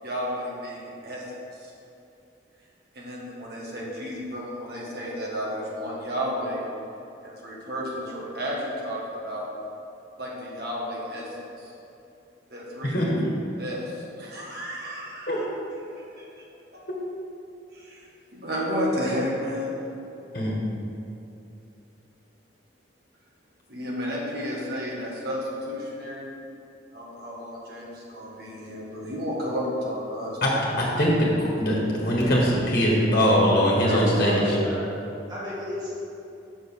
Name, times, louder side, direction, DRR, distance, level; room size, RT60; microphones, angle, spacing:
voice 1, 0.0-1.7 2.9-6.6 7.2-9.5 10.2-11.7 12.5-13.1 13.6-16.4 16.7-16.8 17.7-19.7 23.7-26.3 26.9-30.4 33.8-34.4, equal, 55° right, -4 dB, 1.7 m, -32 dB
voice 2, 12.8-13.2 15.3-15.4 20.3-20.5 30.4-30.5 30.8-34.4, equal, 50° left, -4 dB, 1.6 m, -22 dB
voice 3, 33.3-34.8 35.3-35.9, equal, 20° right, -9 dB, 1.8 m, -34 dB
6.4 x 5.1 x 6.6 m, 2.7 s
head